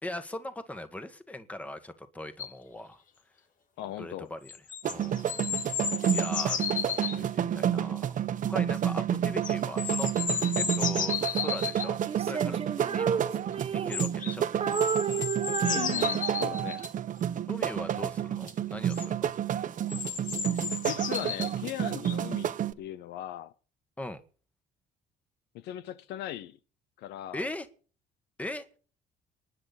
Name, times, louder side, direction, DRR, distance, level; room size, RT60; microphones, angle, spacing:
voice 1, 0.0-3.0 4.0-4.5 4.9-5.4 5.8-13.3 13.7-14.5 17.5-19.3 24.0-24.2 27.3-27.7 28.4-28.7, left 1 dB, 10° left, 1.5 m, -40 dB
sound 1, 2.4-2.5 4.5-7.2 9.4-11.9 13.9-14.4 14.7-16.9 18.5-18.6 18.9-19.1 19.9-21.5 22.0-22.2, left 7 dB, 50° left, 2.2 m, -33 dB
voice 2, 3.8-4.3 15.6-16.8 20.8-23.5 25.5-26.6 27.0-27.5, left 13 dB, 80° left, 0.7 m, -38 dB
sound 2, 4.8-22.7, right 10 dB, 50° right, 1.0 m, -30 dB
Female singing, 12.1-14.3 14.6-16.7, right 6 dB, 35° right, 1.3 m, -32 dB
30.0 x 10.0 x 4.1 m
cardioid pair, 110°, 17 cm